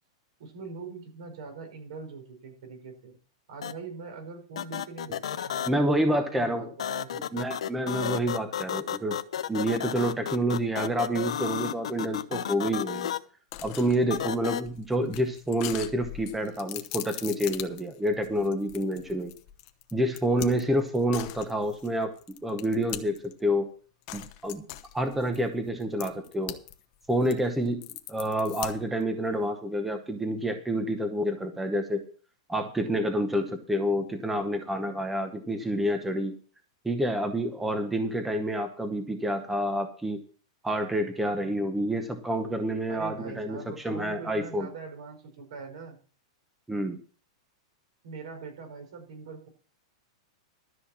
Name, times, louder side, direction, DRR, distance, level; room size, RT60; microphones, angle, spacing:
voice 1, 0.4-3.2 3.5-7.5 42.9-46.0 48.0-49.5, right 4 dB, 65° right, 5 dB, 5.2 m, -42 dB
sound 1, 3.6-3.7 4.6-5.7 6.8-13.2 14.1-14.6, left 10 dB, 85° left, 0.9 m, -32 dB
voice 2, 5.7-6.7 7.3-9.2 9.5-13.1 13.6-19.3 19.9-22.1 22.4-23.7 24.1-24.6 24.9-26.6 27.1-27.8 28.1-32.0 32.5-36.3 36.8-40.2 40.6-44.7 46.7-47.0, equal, 5° right, 7 dB, 0.9 m, -28 dB
sound 2, 13.5-23.4 24.1-26.7 27.0-29.0, left 15 dB, 40° left, 1.0 m, -41 dB
13.0 x 5.8 x 7.3 m, 0.41 s
supercardioid pair, 160°, 3 cm